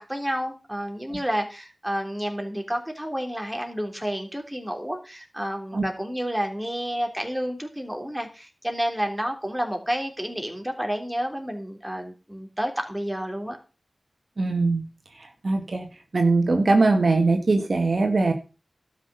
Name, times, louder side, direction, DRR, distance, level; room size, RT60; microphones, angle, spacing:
voice 1, 0.0-13.6, equal, 5° right, 3 dB, 3.3 m, -30 dB
voice 2, 14.4-14.8 15.4-15.9 16.1-18.3, right 3 dB, 60° right, 5 dB, 1.9 m, -21 dB
12.5 x 6.3 x 6.8 m, 0.32 s
wide cardioid pair, 80°, 0 cm